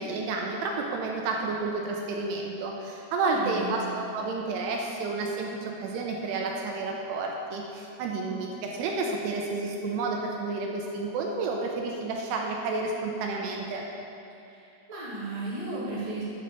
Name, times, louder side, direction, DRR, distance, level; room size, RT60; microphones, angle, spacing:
voice 1, 0.0-13.9, right 3 dB, 85° right, 0 dB, 2.6 m, -31 dB
voice 2, 3.1-3.7 14.4-16.2, right 2 dB, 15° right, -9 dB, 1.4 m, -35 dB
8.8 x 6.0 x 7.0 m, 2.7 s
omnidirectional pair, 5.1 m